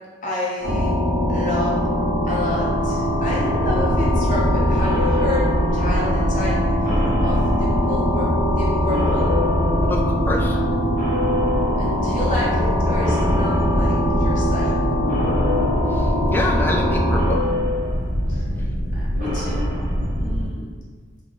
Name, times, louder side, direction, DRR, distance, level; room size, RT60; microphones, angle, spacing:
voice 1, 0.2-0.9 1.3-1.8 2.2-6.7 7.2-9.3 11.8-14.7 18.3-18.4 18.9-19.7 20.1-20.8, left 1 dB, 45° left, -6 dB, 0.7 m, -30 dB
sound 1, 0.6-17.3, equal, 85° right, 1.4 m, -22 dB
sound 2, 3.6-20.5, equal, 45° right, 1.0 m, -24 dB
voice 2, 9.9-10.6 15.9-17.4, left 2 dB, 10° left, 0 dB, 0.4 m, -27 dB
3.3 x 2.3 x 4.0 m, 1.4 s
head